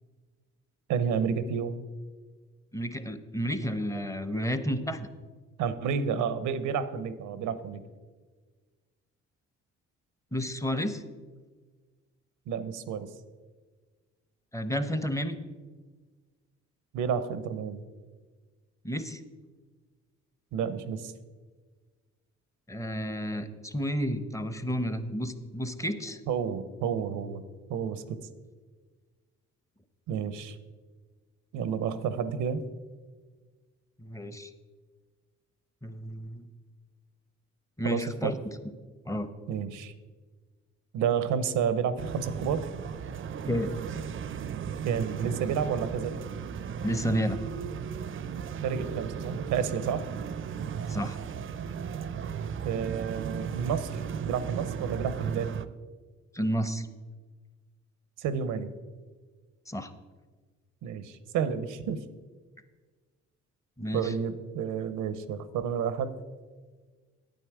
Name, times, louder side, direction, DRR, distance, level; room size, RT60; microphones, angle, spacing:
voice 1, 0.9-1.8 5.6-7.8 12.5-13.1 16.9-17.8 20.5-21.1 26.3-27.4 27.7-28.2 30.1-30.6 31.5-32.6 37.8-38.4 39.5-39.9 40.9-42.7 44.8-46.1 48.6-50.0 52.6-55.5 58.2-58.7 60.8-62.0 63.9-66.2, right 7 dB, 85° right, 13 dB, 0.8 m, -30 dB
voice 2, 2.7-5.1 10.3-11.0 14.5-15.4 18.8-19.2 22.7-26.2 34.0-34.5 35.8-36.5 37.8-38.3 39.1-39.3 43.5-43.7 46.8-47.4 50.9-51.2 56.3-56.9 59.7-59.9 63.8-64.1, equal, 10° left, 10 dB, 0.7 m, -31 dB
sound 1, 42.0-55.7, right 7 dB, 45° right, 0.5 m, -35 dB
9.2 x 9.1 x 4.8 m, 1.4 s
cardioid pair, 90°, 30 cm